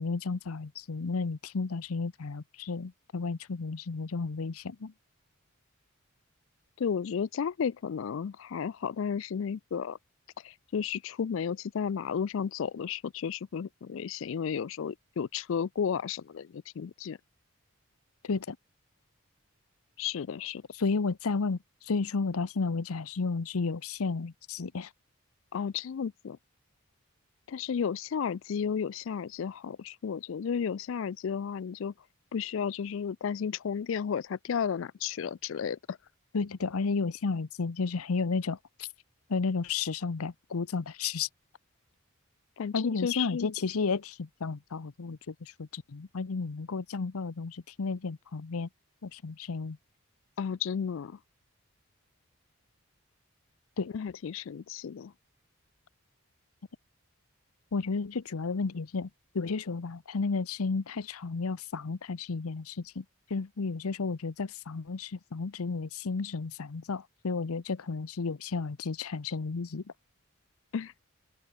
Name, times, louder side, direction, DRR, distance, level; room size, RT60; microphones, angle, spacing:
voice 1, 0.0-4.9 18.2-18.6 20.8-21.6 21.8-24.9 36.3-38.9 39.3-41.3 42.7-48.7 49.0-49.8 53.8-53.9 57.7-59.1 59.3-63.0 63.3-69.8, left 4 dB, 85° left, 0.7 m, -32 dB
voice 2, 6.8-10.0 10.4-17.2 20.0-20.6 25.5-26.4 27.5-31.9 32.3-36.0 42.6-43.5 50.4-51.2 53.9-55.1 70.7-70.9, left 7 dB, 60° left, 0.4 m, -33 dB
open air
head